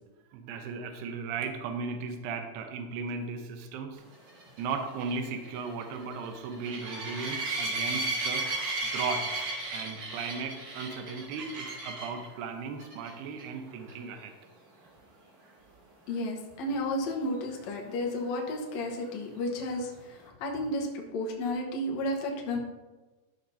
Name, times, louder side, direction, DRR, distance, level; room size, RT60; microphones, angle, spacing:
voice 1, 0.3-4.0 4.6-8.5 8.8-14.3, right 5 dB, 75° right, 5 dB, 2.8 m, -36 dB
sound 1, 4.3-12.2 12.8-13.1 13.4-13.5 13.9-14.0 17.5-17.6, right 2 dB, 50° right, 3.7 m, -34 dB
voice 2, 16.1-19.9 20.4-22.6, left 1 dB, 90° left, -1 dB, 1.5 m, -32 dB
13.0 x 6.7 x 2.8 m, 1.2 s
omnidirectional pair, 4.9 m